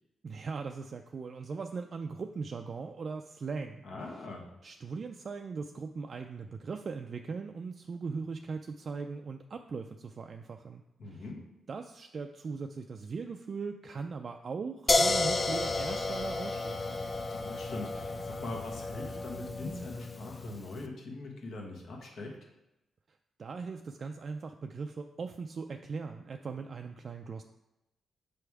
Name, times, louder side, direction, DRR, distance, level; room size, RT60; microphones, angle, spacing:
voice 1, 0.2-3.8 4.6-11.2 11.7-17.0 23.4-27.4, right 4 dB, 45° right, 5 dB, 0.3 m, -39 dB
voice 2, 3.8-4.5 11.0-11.5 17.3-22.4, left 2 dB, 65° left, 0 dB, 1.4 m, -42 dB
sound 1, 14.9-20.7, left 2 dB, 30° left, 0.5 m, -32 dB
6.8 x 3.4 x 4.7 m, 0.94 s
cardioid pair, 105°, 0 cm